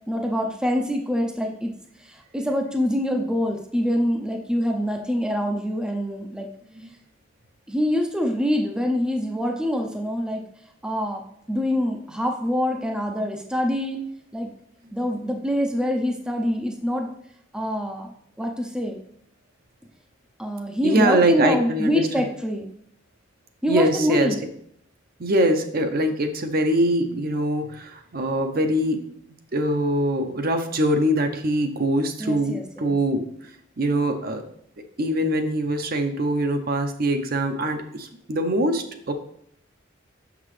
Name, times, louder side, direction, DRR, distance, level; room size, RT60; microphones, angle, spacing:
voice 1, 0.1-1.7 2.0-6.5 7.7-10.4 10.8-11.2 11.5-14.0 14.3-14.5 14.9-17.1 17.5-18.1 18.4-19.0 20.4-22.7 23.6-24.4 32.2-33.0, equal, 5° right, 2 dB, 0.5 m, -25 dB
voice 2, 20.8-22.0 23.7-24.3 25.2-29.1 29.5-33.3 33.8-34.4 35.0-39.1, right 1 dB, 50° right, 6 dB, 0.7 m, -23 dB
6.5 x 5.9 x 3.2 m, 0.69 s
head